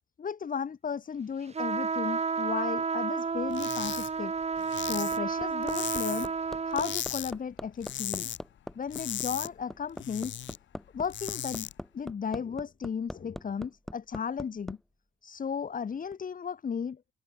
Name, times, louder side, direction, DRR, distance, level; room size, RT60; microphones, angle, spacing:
voice 1, 0.2-4.3 4.8-6.3 6.6-8.3 8.7-10.4 10.9-11.7 11.9-14.8 15.2-17.0, left 6 dB, 45° left, 3.1 m, -35 dB
sound 1, 1.5-7.0, right 5 dB, 30° right, 2.1 m, -31 dB
sound 2, 3.5-4.1 4.4-6.4 6.7-7.3 7.6-8.4 8.7-10.6 10.9-11.7, left 11 dB, 70° left, 3.8 m, -37 dB
Hammer, 4.9-14.8 16.1-16.2, equal, ahead, 1.7 m, -41 dB
cardioid pair, 90°, 20 cm